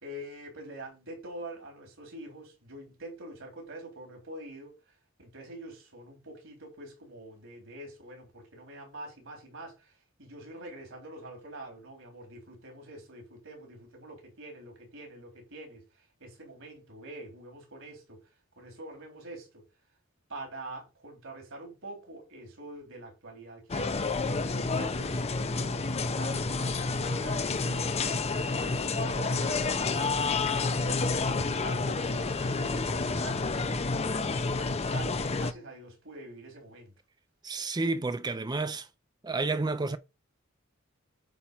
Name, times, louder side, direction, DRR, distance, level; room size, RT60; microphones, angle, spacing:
voice 1, 0.0-4.7 5.2-9.9 10.2-15.8 16.2-18.2 18.6-19.6 20.3-25.8 26.1-30.2 31.0-36.9, right 1 dB, 70° right, 4.3 m, -45 dB
sound 1, 23.7-35.5, left 3 dB, 30° left, 0.7 m, -29 dB
voice 2, 37.4-38.9 39.2-40.0, right 3 dB, 20° right, 0.5 m, -30 dB
9.0 x 4.3 x 5.6 m
head